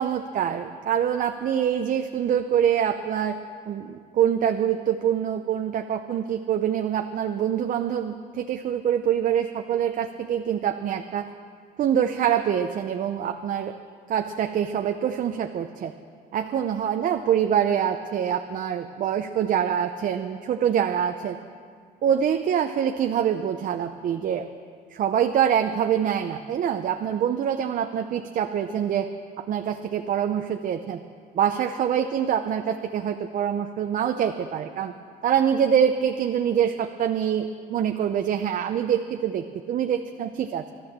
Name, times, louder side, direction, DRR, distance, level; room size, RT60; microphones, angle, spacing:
voice 1, 0.0-3.4 3.7-11.3 11.8-13.7 14.1-15.9 16.3-21.4 22.0-24.5 24.9-29.1 29.4-31.0 31.3-34.9 35.2-40.7, right 9 dB, 50° right, 6 dB, 0.7 m, -25 dB
12.5 x 11.5 x 7.4 m, 2.1 s
cardioid pair, 110°, 17 cm